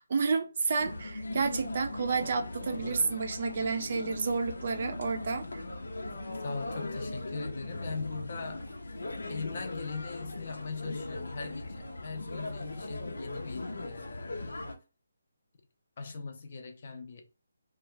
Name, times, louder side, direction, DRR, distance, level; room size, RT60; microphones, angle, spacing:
voice 1, 0.0-5.4, right 5 dB, 35° right, 0.3 m, -30 dB
sound 1, 0.8-14.7, left 2 dB, 85° left, 0.7 m, -39 dB
voice 2, 2.8-3.1 6.4-8.9 9.3-14.6 16.0-17.2, left 4 dB, 30° left, 0.5 m, -40 dB
2.6 x 2.3 x 3.1 m
hypercardioid pair, 175°, 0 cm